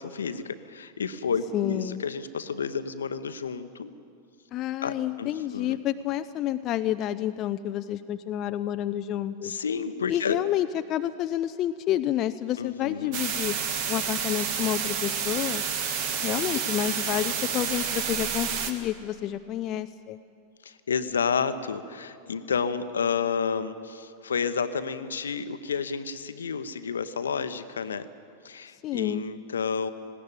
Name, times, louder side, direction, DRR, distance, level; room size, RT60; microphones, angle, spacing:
voice 1, 0.0-3.9 4.8-5.8 9.4-10.4 12.6-13.2 20.6-28.1 28.4-29.9, left 6 dB, 70° left, 12 dB, 0.9 m, -30 dB
voice 2, 1.5-2.0 4.5-9.6 10.1-13.5 13.9-15.6 16.2-20.2 28.8-29.3, left 12 dB, 35° left, 9 dB, 0.5 m, -29 dB
sound 1, 13.1-18.7, right 7 dB, 45° right, 1.7 m, -29 dB
19.5 x 17.5 x 8.7 m, 2.5 s
figure-of-eight pair, 90°, 0 cm